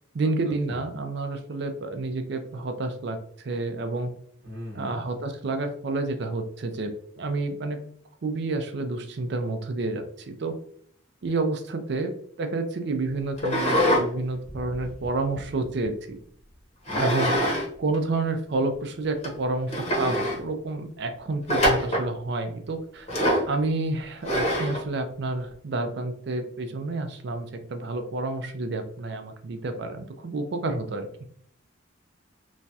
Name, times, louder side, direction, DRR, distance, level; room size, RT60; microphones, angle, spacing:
voice 1, 0.1-3.2 3.4-4.1 4.7-6.9 7.2-7.8 8.2-10.6 11.2-12.1 12.4-13.6 13.9-16.2 17.0-17.5 17.8-23.1 23.5-31.1, right 2 dB, 55° right, 7 dB, 0.4 m, -29 dB
voice 2, 4.4-5.0 16.9-17.6, equal, 75° right, -4 dB, 0.8 m, -39 dB
sound 1, 13.4-14.1 14.5-15.8 16.9-17.7 17.9-18.0 18.7-18.8 19.2-19.3 19.7-20.4 21.5-22.1 23.1-23.5 24.2-24.8, equal, 35° left, 0.8 m, -24 dB
3.0 x 2.3 x 2.7 m, 0.63 s
head